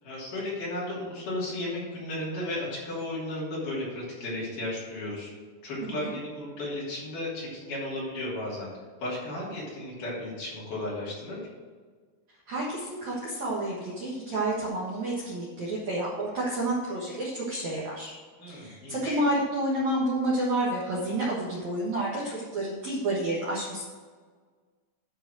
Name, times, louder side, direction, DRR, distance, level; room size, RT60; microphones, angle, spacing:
voice 1, 0.0-5.3 5.6-8.7 9.0-11.4 18.4-19.2, left 1 dB, 45° left, -7 dB, 4.1 m, -34 dB
voice 2, 12.5-18.1 18.5-23.8, right 1 dB, 85° right, -6 dB, 1.6 m, -29 dB
12.5 x 4.6 x 6.3 m, 1.5 s
omnidirectional pair, 6.0 m